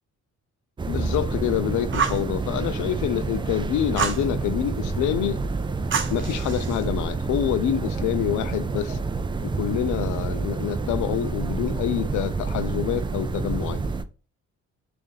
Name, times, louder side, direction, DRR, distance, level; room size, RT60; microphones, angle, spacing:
sound 1, 0.8-14.0, right 3 dB, 15° right, 0.3 m, -28 dB
voice 1, 0.9-5.4 6.1-9.0 9.4-13.8, left 11 dB, 80° left, 0.5 m, -27 dB
Fire, 1.9-2.3 4.0-4.3 5.9-6.8, right 6 dB, 40° right, 0.7 m, -27 dB
3.5 x 2.6 x 3.8 m
cardioid pair, 90°, 30 cm